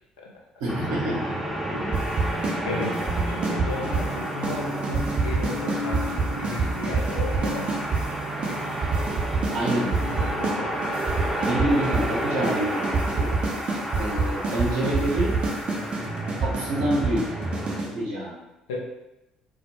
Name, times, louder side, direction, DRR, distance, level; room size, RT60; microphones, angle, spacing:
voice 1, 0.6-1.3 9.5-10.3 11.4-13.3 14.0-15.3 16.4-17.3 17.9-18.4, right 1 dB, 75° right, -5 dB, 0.8 m, -27 dB
sound 1, 0.7-17.8, right 1 dB, ahead, 0.6 m, -31 dB
sound 2, 1.9-2.6 2.8-4.1 4.4-4.6 4.8-8.0 8.4-8.5 8.8-10.6 10.8-12.1 12.4-12.6 12.8-17.9, right 4 dB, 45° right, 0.5 m, -26 dB
voice 2, 2.6-7.7 10.0-10.8 18.7-18.8, left 3 dB, 80° left, -2 dB, 0.5 m, -34 dB
2.1 x 2.0 x 2.9 m, 0.92 s
hypercardioid pair, 55°, 3 cm